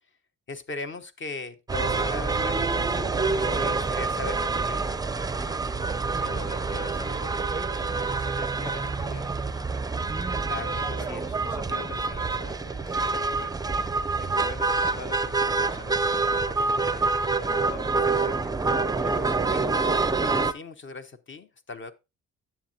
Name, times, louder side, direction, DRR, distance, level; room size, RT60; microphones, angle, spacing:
voice 1, 0.5-2.9 3.5-4.9 10.4-11.2 18.3-18.5 19.3-19.7 20.2-21.9, left 3 dB, 40° left, 0.8 m, -38 dB
sound 1, 1.7-20.5, right 4 dB, 15° right, 0.4 m, -27 dB
voice 2, 6.1-9.6 10.4-13.6 14.1-17.1 17.5-18.3 18.9-19.4, left 4 dB, 75° left, 1.5 m, -44 dB
10.0 x 7.4 x 2.7 m
cardioid pair, 90°, 30 cm